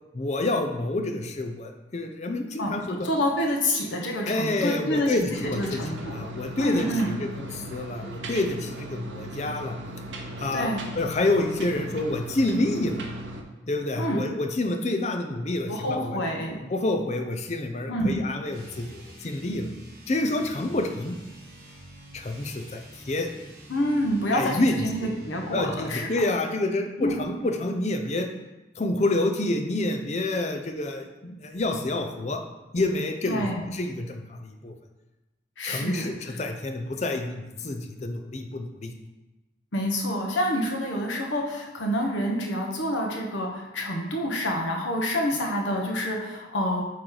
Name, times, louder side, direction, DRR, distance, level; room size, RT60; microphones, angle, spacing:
voice 1, 0.1-3.1 4.3-9.7 10.4-13.0 13.7-16.2 16.7-19.7 20.1-21.2 22.1-23.3 24.3-24.8 25.0-25.1 25.5-28.3 28.8-32.4 32.7-33.5 33.7-34.7 35.6-38.9, left 2 dB, 35° left, 5 dB, 0.5 m, -28 dB
voice 2, 2.6-6.2 6.6-7.2 10.5-10.9 13.9-14.2 15.7-16.6 17.9-18.3 23.7-26.1 27.0-27.1 33.2-33.7 35.6-36.1 39.7-46.8, equal, 80° left, 0 dB, 1.1 m, -27 dB
sound 1, 5.3-13.4, right 1 dB, 75° right, 0.7 m, -38 dB
sound 2, 18.5-26.0, right 1 dB, 50° right, 1.8 m, -46 dB
8.6 x 3.2 x 3.9 m, 1.1 s
head